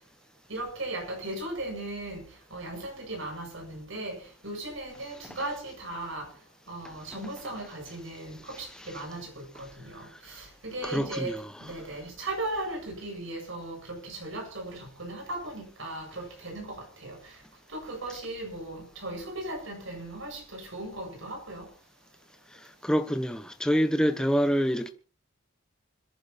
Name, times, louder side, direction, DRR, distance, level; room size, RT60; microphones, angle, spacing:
voice 1, 0.5-6.3 6.7-17.4 17.7-21.7, right 2 dB, 70° right, 7.9 m, -37 dB
voice 2, 10.8-11.8 22.8-24.9, equal, 5° left, 1.1 m, -27 dB
26.5 x 11.0 x 4.2 m
head